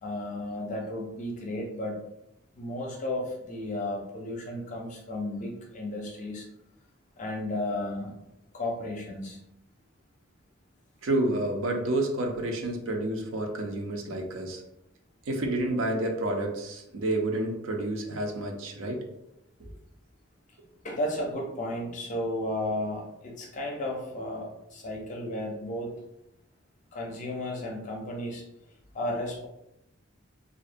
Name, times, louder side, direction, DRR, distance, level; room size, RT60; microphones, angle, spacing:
voice 1, 0.0-2.0 2.6-6.5 7.2-8.1 8.5-9.4 20.8-25.9 26.9-28.4 28.9-29.5, left 1 dB, 35° left, 0 dB, 0.5 m, -33 dB
voice 2, 11.0-14.6 15.3-19.0 19.6-19.7, right 1 dB, 70° right, 2 dB, 0.5 m, -29 dB
2.4 x 2.1 x 2.5 m, 0.85 s
head